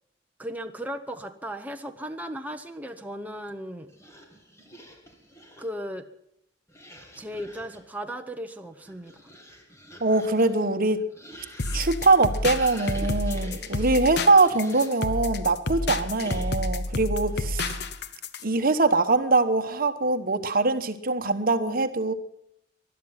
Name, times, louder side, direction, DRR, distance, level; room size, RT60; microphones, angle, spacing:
voice 1, 0.4-3.9 5.6-6.1 7.1-9.1, equal, 10° right, 4 dB, 0.9 m, -36 dB
sound 1, 3.9-5.8 6.7-7.9 8.6-15.1 16.1-16.8, equal, 15° left, 2.4 m, -46 dB
voice 2, 10.0-11.0 11.7-17.7 18.4-22.1, right 3 dB, 50° right, 10 dB, 1.2 m, -23 dB
sound 2, 11.6-18.4, left 2 dB, 60° left, 1.1 m, -30 dB
20.5 x 12.0 x 5.8 m, 0.75 s
head